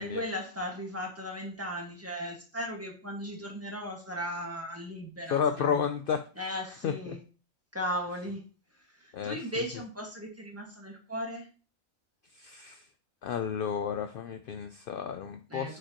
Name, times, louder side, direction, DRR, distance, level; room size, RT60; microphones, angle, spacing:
voice 1, 0.0-5.8 6.3-7.2 7.7-8.4 8.7-11.5 15.5-15.8, equal, 10° right, 0 dB, 1.6 m, -37 dB
voice 2, 5.3-6.2 6.8-7.2 9.1-9.4 12.4-12.8 13.2-15.8, left 7 dB, 65° left, 8 dB, 0.5 m, -31 dB
8.7 x 4.9 x 3.0 m, 0.37 s
omnidirectional pair, 1.4 m